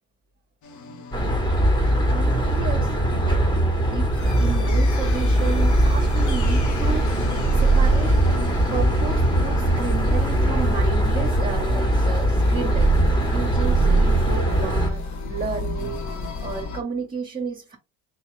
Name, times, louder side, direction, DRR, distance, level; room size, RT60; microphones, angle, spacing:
sound 1, 0.6-16.8, left 4 dB, 50° left, 0.9 m, -36 dB
sound 2, 1.1-14.9, right 1 dB, 10° left, 1.2 m, -20 dB
voice 1, 1.5-7.1 7.5-8.4 8.7-13.0 13.3-17.8, right 5 dB, 20° right, 1.0 m, -33 dB
sound 3, 9.8-16.6, left 1 dB, 65° left, 1.4 m, -35 dB
3.8 x 2.8 x 3.2 m
supercardioid pair, 85°, 39 cm